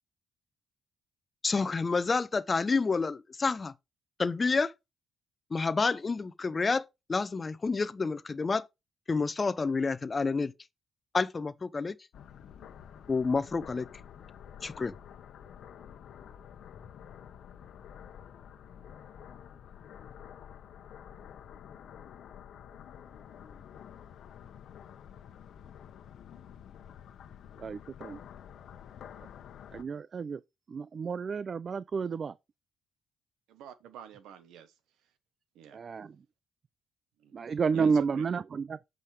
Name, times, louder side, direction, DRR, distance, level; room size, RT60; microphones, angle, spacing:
voice 1, 1.4-3.7 4.2-4.7 5.5-8.6 9.1-10.5 11.1-12.0 13.1-13.9 14.6-14.9, left 4 dB, 30° left, 0.7 m, -29 dB
sound 1, 12.1-29.8, left 9 dB, 70° left, 1.0 m, -49 dB
voice 2, 27.6-28.2 29.7-30.4 30.7-32.3 35.7-36.1 37.3-38.8, right 5 dB, 45° right, 0.4 m, -31 dB
voice 3, 33.5-34.7 35.5-35.8 37.2-37.3 37.7-38.3, right 9 dB, 90° right, 1.1 m, -47 dB
8.3 x 5.2 x 3.3 m
cardioid pair, 90°, 0 cm